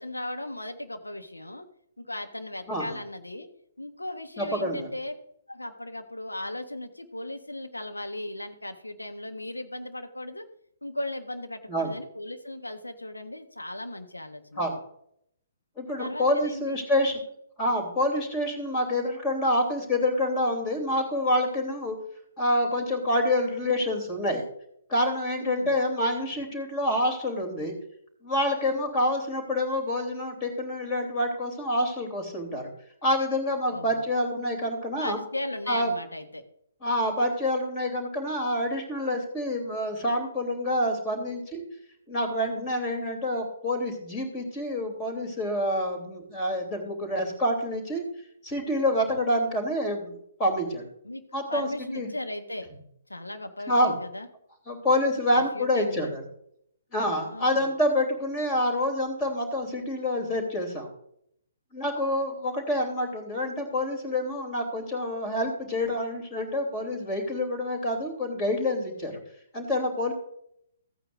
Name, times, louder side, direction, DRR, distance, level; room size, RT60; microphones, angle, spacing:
voice 1, 0.0-1.6 2.0-3.5 3.8-5.1 5.5-10.5 10.8-14.6 16.0-16.8 25.3-25.8 33.7-34.1 35.0-36.4 51.0-51.2 51.5-52.7 53.1-54.3 55.3-56.1 57.3-57.7, left 1 dB, 80° left, 6 dB, 1.3 m, -37 dB
voice 2, 4.4-4.9 11.7-11.9 14.6-14.8 15.8-17.2 17.6-22.0 22.4-24.4 24.9-27.7 28.2-32.7 33.0-35.2 35.7-35.9 36.8-41.6 42.1-48.0 48.4-50.9 51.3-51.7 51.9-52.1 53.7-53.9 54.7-56.2 56.9-60.9 61.7-69.2 69.5-70.1, left 1 dB, 20° left, 4 dB, 3.1 m, -27 dB
14.5 x 9.0 x 2.6 m, 0.70 s
figure-of-eight pair, 125°, 0 cm